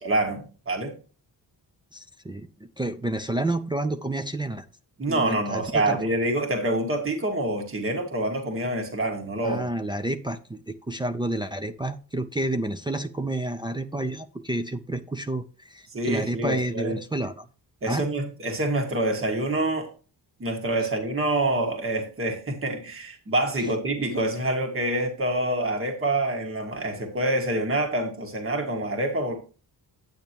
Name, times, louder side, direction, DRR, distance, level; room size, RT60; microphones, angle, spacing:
voice 1, 0.0-0.9 5.0-9.7 15.9-17.0 17.8-19.9 20.4-29.4, right 1 dB, 30° right, 1.8 m, -26 dB
voice 2, 1.9-4.6 5.1-6.0 9.4-17.5 17.9-18.0 23.6-23.7, right 1 dB, 10° right, 0.5 m, -30 dB
9.4 x 8.7 x 2.9 m
wide cardioid pair, 140°, 41 cm